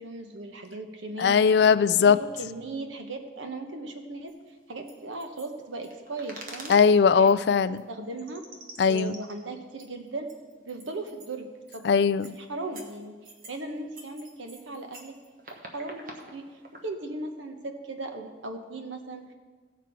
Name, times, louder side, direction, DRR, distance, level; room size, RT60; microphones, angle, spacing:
voice 1, 0.0-1.4 2.0-4.4 4.7-6.7 7.1-7.3 7.9-8.5 8.8-10.3 10.6-11.5 11.7-11.9 12.2-13.2 13.5-15.2 15.7-19.3, right 2 dB, 90° right, 5 dB, 1.2 m, -37 dB
voice 2, 1.2-2.2 6.7-7.8 8.8-9.2 11.8-12.3, left 6 dB, 60° left, 16 dB, 0.3 m, -20 dB
sound 1, 4.3-4.4 4.9-6.8 7.3-7.4 7.8-7.9 8.2-11.3 11.7-11.9 12.2-12.4 12.7-13.6 13.9-16.9, right 2 dB, 45° right, 1.3 m, -46 dB
16.5 x 6.0 x 4.6 m, 1.4 s
head